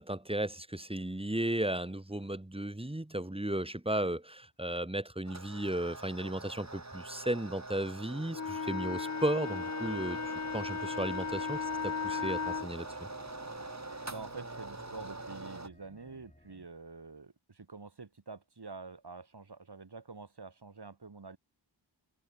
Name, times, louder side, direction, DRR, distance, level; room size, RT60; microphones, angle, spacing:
voice 1, 0.0-10.2 10.5-12.9, right 1 dB, 10° right, 1.5 m, -35 dB
sound 1, 5.3-15.7, right 2 dB, 35° right, 3.6 m, -44 dB
Wind instrument woodwind instrument, 8.3-12.7, left 6 dB, 40° left, 0.7 m, -36 dB
sound 2, 9.8-16.6, left 1 dB, 15° left, 6.7 m, -58 dB
voice 2, 14.1-21.4, right 4 dB, 55° right, 2.3 m, -47 dB
wide cardioid pair, 60°, 47 cm